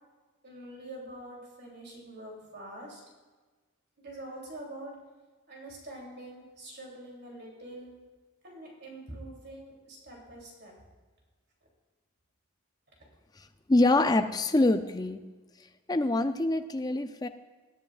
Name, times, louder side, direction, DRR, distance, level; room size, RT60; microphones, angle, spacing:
voice 1, 0.4-3.0 4.0-4.9 5.5-8.0 8.4-10.7, right 1 dB, 50° right, -2 dB, 3.2 m, -45 dB
voice 2, 13.4-15.2 15.9-17.3, left 2 dB, 20° left, 9 dB, 0.4 m, -25 dB
18.0 x 10.0 x 2.5 m, 1.3 s
head